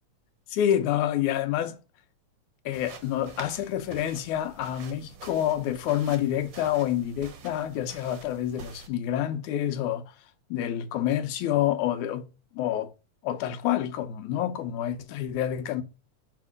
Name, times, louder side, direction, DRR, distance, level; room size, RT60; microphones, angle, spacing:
voice 1, 0.5-1.8 2.7-10.0 10.5-12.3 12.5-12.9 13.2-15.8, left 11 dB, 85° left, 2.2 m, -28 dB
sound 1, 2.7-8.9, right 5 dB, 60° right, 1.2 m, -47 dB
6.6 x 3.6 x 4.8 m
omnidirectional pair, 3.4 m